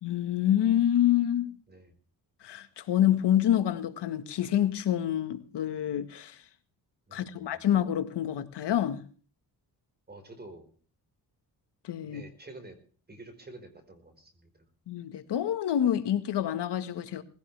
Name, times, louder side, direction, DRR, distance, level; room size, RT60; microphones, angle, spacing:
voice 1, 0.0-1.5 2.4-6.4 7.1-9.0 11.8-12.2 14.9-17.2, left 11 dB, 85° left, 1.9 m, -27 dB
voice 2, 7.1-7.6 10.1-10.7 12.0-12.8 13.1-14.5, right 2 dB, 25° right, 5.0 m, -48 dB
20.0 x 16.5 x 3.5 m
wide cardioid pair, 145°, 40 cm